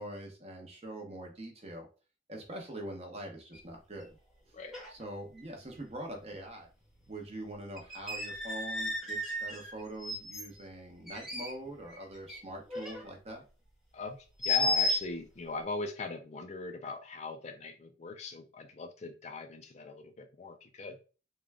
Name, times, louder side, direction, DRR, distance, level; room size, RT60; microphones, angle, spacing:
voice 1, 0.0-1.9 2.3-4.2 4.9-6.7 7.1-13.4, right 1 dB, 30° right, 2 dB, 0.9 m, -43 dB
sound 1, 3.5-3.6 4.0-4.1 4.7-5.0 5.4-5.5 7.0-7.1 7.8-10.5 11.1-12.4 12.6-13.1 14.4-15.0, left 2 dB, ahead, 0.9 m, -33 dB
voice 2, 13.9-21.0, left 4 dB, 35° left, 6 dB, 0.4 m, -40 dB
3.7 x 2.2 x 3.4 m, 0.35 s
head